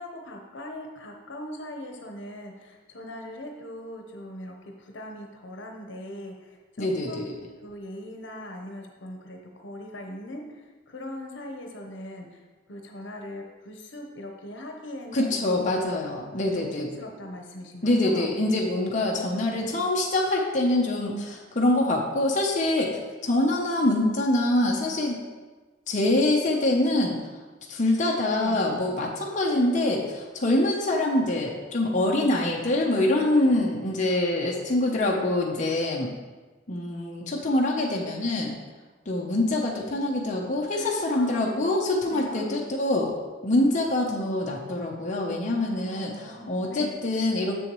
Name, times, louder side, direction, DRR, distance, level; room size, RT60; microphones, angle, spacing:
voice 1, 0.0-7.3 7.6-12.4 12.7-15.3 15.6-15.9 16.4-18.4 19.0-19.9 28.3-28.6 37.7-38.1 40.7-41.7 42.0-42.7 45.8-47.0, left 1 dB, 75° left, 2 dB, 1.0 m, -40 dB
voice 2, 6.8-7.3 15.1-16.9 17.8-25.2 25.9-27.2 27.7-36.1 36.7-38.5 39.1-43.1 43.4-47.6, left 1 dB, 40° left, -2 dB, 0.8 m, -25 dB
7.0 x 6.9 x 3.1 m, 1.3 s
head